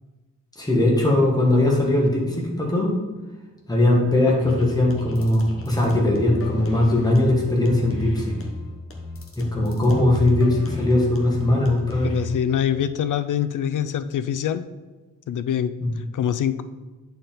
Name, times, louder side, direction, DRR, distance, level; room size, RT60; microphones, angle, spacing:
voice 1, 0.6-2.9 3.7-8.4 9.4-12.2 15.8-15.9, left 1 dB, 10° left, -2 dB, 1.6 m, -20 dB
sound 1, 4.4-12.4, left 1 dB, 45° left, 1.2 m, -34 dB
voice 2, 12.0-14.7 15.3-16.6, left 9 dB, 75° left, 12 dB, 0.5 m, -25 dB
9.6 x 4.5 x 3.8 m, 1.2 s
wide cardioid pair, 130°, 31 cm